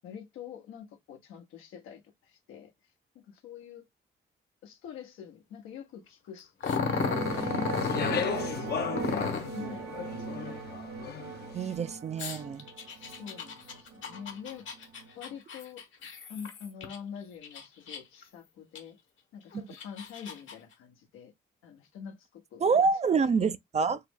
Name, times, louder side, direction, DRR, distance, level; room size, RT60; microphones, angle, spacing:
voice 1, 0.0-2.7 3.1-3.9 4.6-6.5 7.0-10.6 12.9-14.7 15.1-15.9 16.3-19.0 19.3-21.3 21.6-22.9 23.2-23.5, left 8 dB, 85° left, 0.9 m, -45 dB
Growling, 6.6-8.3 9.0-9.6 12.2-17.0 17.4-18.2 18.8-18.9 19.5-20.5, left 5 dB, 70° left, 1.2 m, -34 dB
sound 1, 6.7-15.3, right 4 dB, 90° right, 0.8 m, -39 dB
Speech, 7.2-11.5, left 7 dB, 50° left, 0.6 m, -36 dB
voice 2, 11.5-12.6 22.6-24.0, right 5 dB, 35° right, 0.4 m, -26 dB
4.4 x 2.0 x 3.4 m
supercardioid pair, 65°, 21 cm